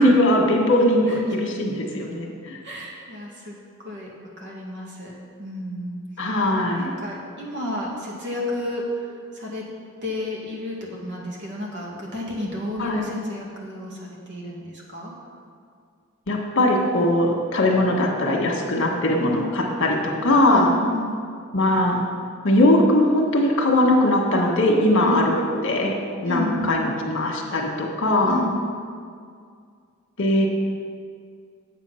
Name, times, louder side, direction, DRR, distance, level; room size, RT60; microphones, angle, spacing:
voice 1, 0.0-2.6 6.2-6.9 12.8-13.0 16.3-20.7 21.5-22.0 22.4-25.3 25.6-25.9 26.2-28.4 30.2-30.5, left 1 dB, 65° left, 0 dB, 1.5 m, -20 dB
voice 2, 2.6-3.6 3.8-4.1 4.4-5.1 5.4-6.0 6.8-8.9 9.3-9.6 10.0-15.1 20.5-21.2 25.0-25.3 26.3-26.7 28.2-28.7, left 1 dB, 55° right, -3 dB, 2.0 m, -31 dB
8.2 x 7.5 x 5.7 m, 2.2 s
head